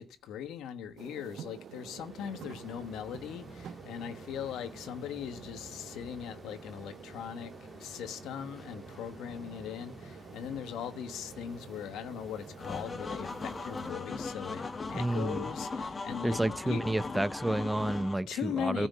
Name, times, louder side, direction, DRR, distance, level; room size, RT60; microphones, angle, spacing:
voice 1, 0.0-7.5 7.8-16.4 16.6-16.8 18.3-18.9, left 9 dB, 85° left, 1.3 m, -39 dB
sound 1, 1.0-13.9, right 9 dB, 70° right, 0.6 m, -50 dB
sound 2, 1.5-16.1, left 1 dB, 15° left, 2.1 m, -51 dB
sound 3, 12.6-18.1, left 3 dB, 30° left, 1.2 m, -38 dB
voice 2, 14.9-15.4 16.2-18.9, right 1 dB, 10° right, 0.9 m, -30 dB
15.0 x 6.1 x 8.3 m
cardioid pair, 90°, 0 cm